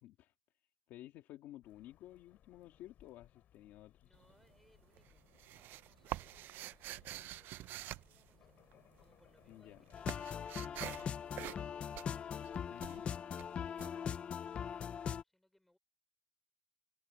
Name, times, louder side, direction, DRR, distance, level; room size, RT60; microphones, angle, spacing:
voice 1, 0.0-4.2 9.5-9.8 12.7-13.0, left 14 dB, 75° left, 1.8 m, -54 dB
sound 1, 1.6-11.6, left 11 dB, 50° left, 2.8 m, -67 dB
voice 2, 4.0-5.2 5.5-12.0 12.4-15.8, left 1 dB, 5° left, 3.7 m, -73 dB
sound 2, 4.1-4.7 5.0-9.0 9.3-14.9, right 15 dB, 65° right, 0.5 m, -47 dB
sound 3, 9.9-15.2, left 8 dB, 30° left, 0.3 m, -41 dB
cardioid pair, 175°, 4 cm